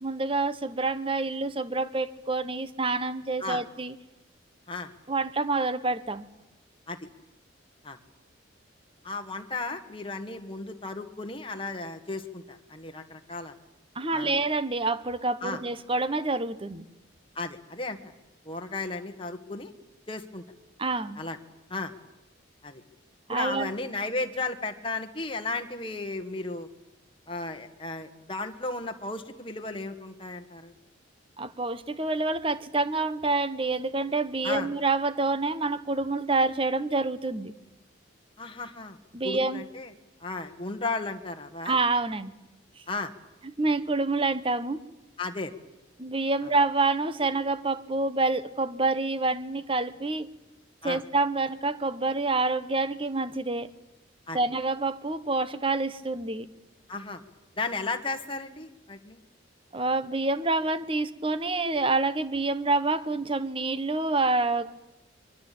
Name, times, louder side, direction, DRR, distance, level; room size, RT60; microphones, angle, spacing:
voice 1, 0.0-3.9 5.1-6.3 13.9-16.8 20.8-21.2 23.3-23.7 31.4-37.5 39.1-39.6 41.6-42.3 43.6-44.8 46.0-50.3 50.8-53.7 54.3-56.5 59.7-64.9, right 3 dB, 25° right, 14 dB, 1.1 m, -27 dB
voice 2, 9.0-13.5 14.1-14.4 15.4-15.6 17.4-18.2 18.5-19.7 20.1-20.4 21.2-21.4 21.7-21.9 22.6-22.8 23.3-26.7 27.3-30.7 34.4-34.7 38.4-39.0 39.2-39.9 40.2-41.8 42.9-43.1 45.2-45.5 46.4-46.5 50.8-51.0 54.3-54.4 56.9-57.2 57.6-59.2, left 3 dB, 25° left, 5 dB, 1.9 m, -34 dB
24.5 x 23.0 x 8.7 m, 0.94 s
head